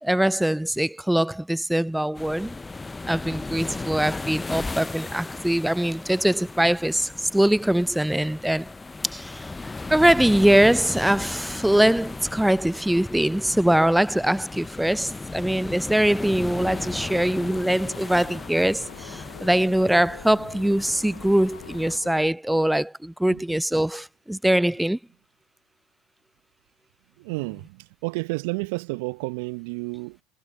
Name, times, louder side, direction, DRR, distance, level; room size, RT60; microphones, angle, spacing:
voice 1, 0.0-2.6 3.1-8.7 9.1-9.4 9.9-25.0, right 1 dB, 5° right, 0.4 m, -22 dB
sound 1, 2.1-22.0, left 3 dB, 15° left, 0.8 m, -36 dB
sound 2, 16.6-22.3, left 9 dB, 80° left, 1.1 m, -45 dB
voice 2, 27.2-27.8 28.0-30.2, right 26 dB, 65° right, 0.8 m, -30 dB
figure-of-eight pair, 75°, 0 cm